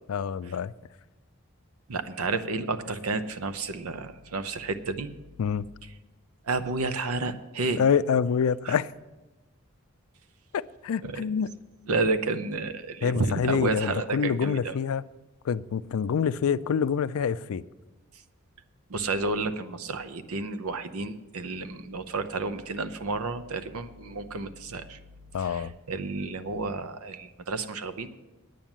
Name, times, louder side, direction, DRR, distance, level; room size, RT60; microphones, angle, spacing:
voice 1, 0.1-0.7 5.4-5.7 7.8-8.9 10.5-11.5 13.0-15.0 15.4-17.6 25.3-25.7, left 7 dB, 75° left, 0.4 m, -26 dB
voice 2, 1.9-5.1 6.5-7.8 8.6-8.7 11.0-11.2 11.9-14.8 18.9-25.0 25.4-28.2, right 3 dB, 80° right, 0.7 m, -31 dB
9.3 x 9.0 x 7.3 m
head